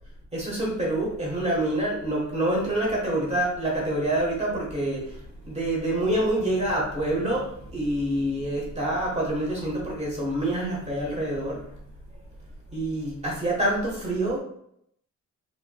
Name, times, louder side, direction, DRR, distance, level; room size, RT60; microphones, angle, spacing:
voice 1, 0.3-12.2 12.7-14.4, right 1 dB, 20° right, -4 dB, 1.3 m, -27 dB
4.6 x 2.9 x 2.3 m, 0.69 s
wide cardioid pair, 175°, 31 cm